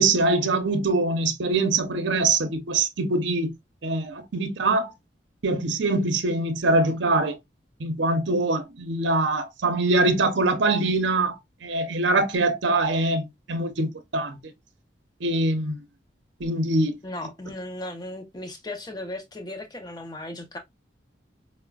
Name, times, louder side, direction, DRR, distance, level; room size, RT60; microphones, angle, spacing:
voice 1, 0.0-3.5 3.8-4.9 5.4-7.4 7.8-14.4 15.2-15.8 16.4-17.0, right 2 dB, 75° right, 0.6 m, -23 dB
voice 2, 17.0-20.6, left 1 dB, 20° left, 0.6 m, -36 dB
4.8 x 2.0 x 2.3 m
head